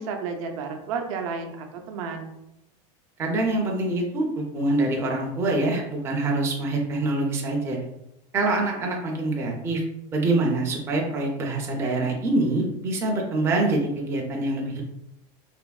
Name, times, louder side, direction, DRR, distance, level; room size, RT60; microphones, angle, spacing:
voice 1, 0.0-2.3, right 5 dB, 75° right, 4 dB, 0.5 m, -32 dB
voice 2, 3.2-7.8 8.3-9.8 10.1-14.8, right 2 dB, 15° right, -1 dB, 0.4 m, -25 dB
3.3 x 2.0 x 2.2 m, 0.84 s
supercardioid pair, 150°, 17 cm